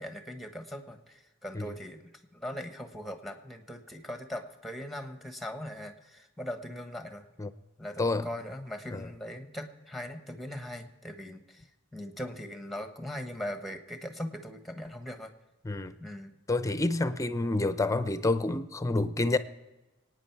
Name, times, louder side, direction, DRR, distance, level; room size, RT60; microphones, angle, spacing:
voice 1, 0.0-2.0 2.3-7.2 7.8-11.7 11.9-15.3 16.0-16.3, equal, ahead, 1.2 m, -40 dB
voice 2, 16.5-19.4, left 2 dB, 15° left, 0.6 m, -28 dB
25.0 x 9.5 x 4.6 m
head